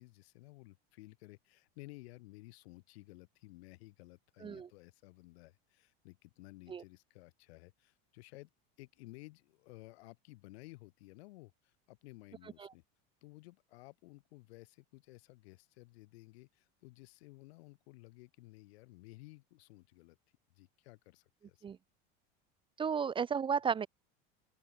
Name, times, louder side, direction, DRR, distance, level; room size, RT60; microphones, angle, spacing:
voice 1, 0.0-8.5 8.8-12.8 13.2-20.2 20.5-21.6, left 21 dB, 80° left, 6.6 m, -55 dB
voice 2, 22.8-23.9, right 6 dB, 15° right, 0.8 m, -33 dB
open air
cardioid pair, 165°, 31 cm